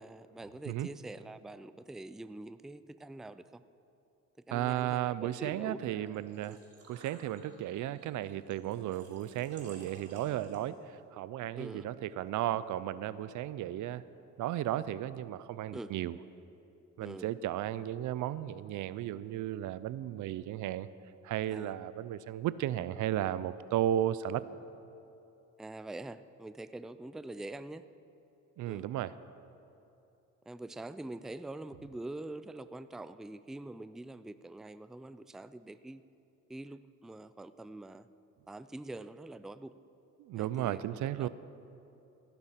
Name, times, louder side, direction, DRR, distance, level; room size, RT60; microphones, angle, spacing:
voice 1, 0.0-3.6 4.5-6.2 6.5-6.6 11.6-11.9 15.7-15.9 17.0-17.3 21.5-21.7 25.6-27.8 28.7-28.9 30.5-36.0 36.5-38.1 38.5-39.7 40.3-41.3, right 2 dB, ahead, 13 dB, 0.4 m, -45 dB
voice 2, 4.5-6.6 6.9-14.0 14.4-16.2 17.0-20.9 21.2-24.4 28.6-29.2 40.2-41.3, right 12 dB, 75° right, 16 dB, 0.6 m, -34 dB
Engine / Trickle dribble / Fill (with liquid), 6.1-10.9, right 3 dB, 55° right, 4.1 m, -57 dB
16.5 x 11.0 x 5.7 m, 2.9 s
cardioid pair, 90°, 30 cm